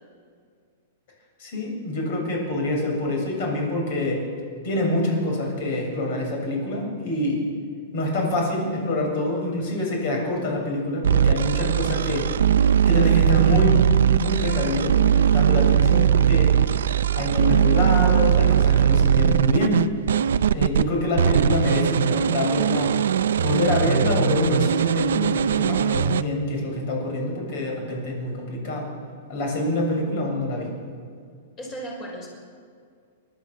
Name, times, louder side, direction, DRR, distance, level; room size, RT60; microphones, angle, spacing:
voice 1, 1.4-4.2 4.6-7.4 7.9-12.3 12.9-13.8 14.2-16.5 17.1-19.8 20.5-22.9 23.4-28.9 29.3-30.7, left 1 dB, 40° left, 0 dB, 7.5 m, -25 dB
sound 1, 11.0-20.8 21.2-26.2, right 9 dB, 90° right, 0.6 m, -20 dB
voice 2, 31.6-32.3, right 1 dB, 20° left, 0 dB, 5.8 m, -35 dB
29.5 x 13.0 x 7.4 m, 2.1 s
supercardioid pair, 175°, 0 cm